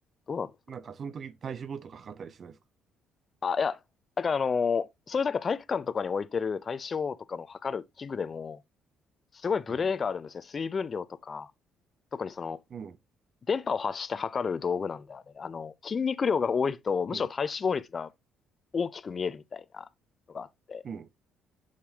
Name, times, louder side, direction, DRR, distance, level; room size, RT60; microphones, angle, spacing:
voice 1, 0.7-2.6 9.7-9.9 12.7-13.0 17.1-17.3 20.8-21.1, right 6 dB, 50° right, 0.7 m, -40 dB
voice 2, 3.4-3.8 4.2-8.6 9.3-11.5 12.1-12.6 13.5-18.1 18.7-19.9 20.3-20.8, left 5 dB, 40° left, 0.5 m, -30 dB
6.8 x 6.6 x 2.8 m
supercardioid pair, 60°, 0 cm